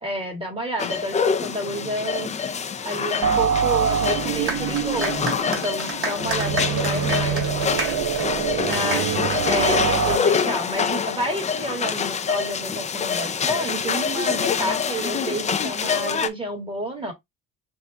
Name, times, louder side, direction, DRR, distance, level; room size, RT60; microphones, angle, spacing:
voice 1, 0.0-2.3 2.8-7.4 8.7-9.1 9.4-17.1, right 1 dB, 15° right, 1.8 m, -30 dB
sound 1, 0.8-16.3, left 6 dB, 20° left, 0.3 m, -26 dB
sound 2, 3.2-10.2, right 7 dB, 65° right, 0.9 m, -25 dB
sound 3, 4.5-10.4, right 3 dB, 35° right, 2.4 m, -31 dB
voice 2, 8.1-9.6 17.0-17.1, left 7 dB, 45° left, 1.1 m, -43 dB
5.4 x 2.6 x 3.3 m
cardioid pair, 145°, 37 cm